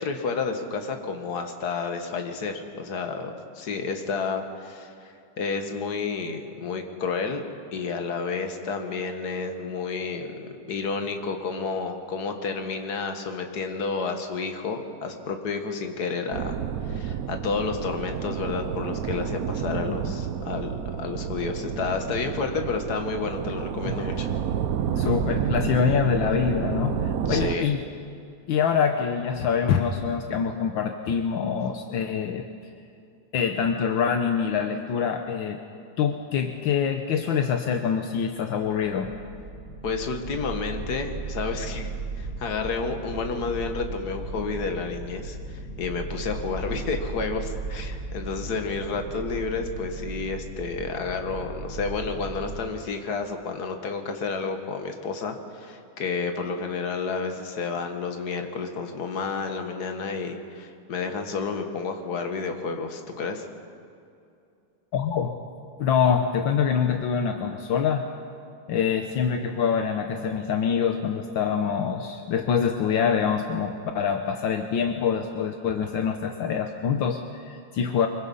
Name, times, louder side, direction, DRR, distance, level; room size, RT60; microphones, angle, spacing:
voice 1, 0.0-4.9 5.4-7.4 7.7-16.5 16.9-24.3 27.3-27.7 39.8-63.5, left 4 dB, 55° left, 5 dB, 2.0 m, -30 dB
sound 1, 16.3-27.6, right 8 dB, 60° right, 1.0 m, -30 dB
voice 2, 19.7-20.1 23.8-24.1 24.9-27.8 28.5-32.4 33.3-35.6 36.0-39.1 64.9-65.4 65.8-68.0 68.7-78.1, left 7 dB, 75° left, 5 dB, 1.7 m, -25 dB
sound 2, 38.4-52.7, right 3 dB, 80° right, 3.9 m, -36 dB
25.0 x 22.5 x 5.5 m, 2.5 s
omnidirectional pair, 2.1 m